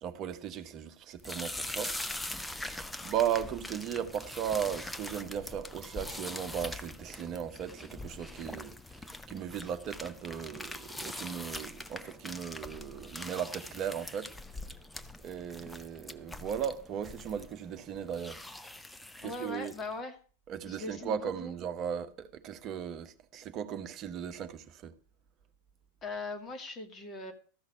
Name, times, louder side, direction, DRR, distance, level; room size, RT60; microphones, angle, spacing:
voice 1, 0.0-1.9 2.7-14.3 15.2-18.4 19.2-19.7 20.5-24.9, right 9 dB, 35° right, 1.2 m, -37 dB
sound 1, 1.2-19.9, left 1 dB, 5° left, 0.8 m, -43 dB
voice 2, 19.2-20.2 20.6-21.5 26.0-27.3, left 3 dB, 25° left, 2.4 m, -40 dB
14.0 x 6.4 x 7.8 m
figure-of-eight pair, 90°, 0 cm